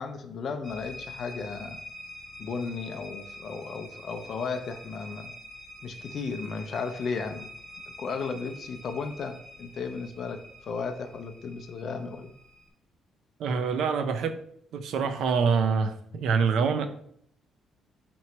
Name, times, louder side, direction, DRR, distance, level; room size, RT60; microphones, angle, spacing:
voice 1, 0.0-1.8 2.4-5.3 5.8-7.5 8.0-12.3, left 5 dB, 50° left, 6 dB, 0.4 m, -35 dB
sound 1, 0.6-12.7, equal, 5° left, 0.8 m, -46 dB
voice 2, 13.4-14.4 14.7-16.9, right 5 dB, 75° right, 9 dB, 0.4 m, -25 dB
3.0 x 2.8 x 4.4 m, 0.67 s
cardioid pair, 140°, 0 cm